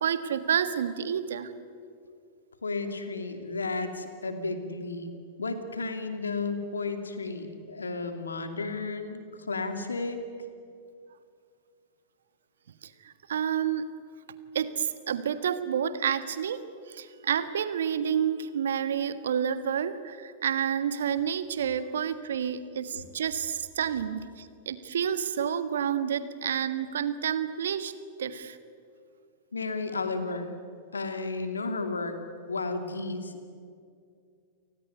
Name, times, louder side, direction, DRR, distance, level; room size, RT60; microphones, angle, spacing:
voice 1, 0.0-1.5 12.8-13.9 14.5-27.9 28.2-28.6, right 8 dB, 70° right, 12 dB, 1.5 m, -29 dB
voice 2, 2.6-5.1 5.4-9.2 9.5-10.2 29.5-30.5 30.9-32.2 32.5-33.5, left 3 dB, 80° left, 7 dB, 2.6 m, -33 dB
29.0 x 19.0 x 9.8 m, 2.3 s
figure-of-eight pair, 95°, 0 cm